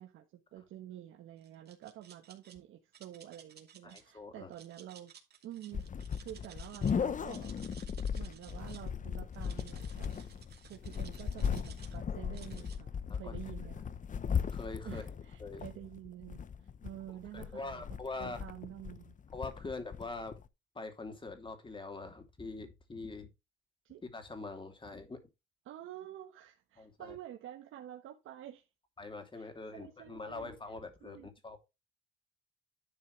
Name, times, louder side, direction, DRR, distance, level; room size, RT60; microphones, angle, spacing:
voice 1, 0.0-5.1 5.4-5.8 6.1-7.5 8.1-10.1 10.6-13.9 14.8-17.8 18.2-19.2 23.8-24.0 25.6-28.7 29.3-30.5 31.0-31.3, right 12 dB, 85° right, 1.4 m, -49 dB
sound 1, 1.4-2.5 2.9-4.0 4.5-6.9 7.2-8.9 9.3-12.0 12.3-12.8, right 8 dB, 55° right, 2.6 m, -57 dB
voice 2, 3.8-4.5 13.1-13.3 14.5-15.0 15.4-15.6 17.3-18.4 19.3-20.3 20.7-23.3 24.0-25.2 26.8-27.2 29.0-31.6, left 3 dB, 25° left, 3.0 m, -43 dB
sound 2, 5.7-20.5, left 7 dB, 40° left, 0.9 m, -38 dB
11.0 x 6.1 x 3.3 m
cardioid pair, 90°, 20 cm